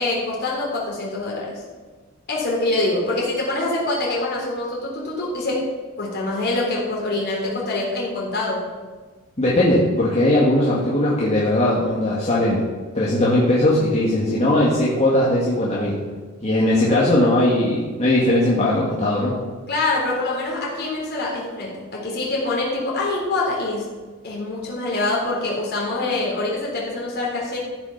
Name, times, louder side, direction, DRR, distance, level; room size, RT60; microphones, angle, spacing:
voice 1, 0.0-1.6 2.3-5.7 6.0-8.7 19.7-23.9 24.2-27.6, left 2 dB, 45° left, -4 dB, 3.8 m, -25 dB
voice 2, 9.4-12.6 12.9-16.0 16.4-19.3, left 1 dB, 30° left, -6 dB, 1.8 m, -19 dB
14.5 x 6.1 x 5.9 m, 1.4 s
head